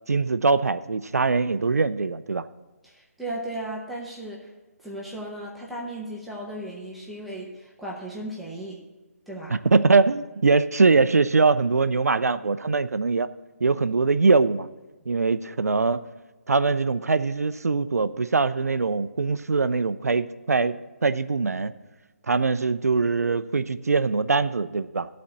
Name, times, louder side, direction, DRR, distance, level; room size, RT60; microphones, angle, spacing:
voice 1, 0.1-2.5 9.5-13.3 13.6-14.7 15.1-16.0 16.5-21.7 22.3-25.1, right 4 dB, 85° right, 13 dB, 0.4 m, -22 dB
voice 2, 2.8-4.5 4.8-8.8 9.3-9.6, right 1 dB, ahead, -5 dB, 0.8 m, -36 dB
12.0 x 4.3 x 6.9 m, 1.2 s
figure-of-eight pair, 150°, 8 cm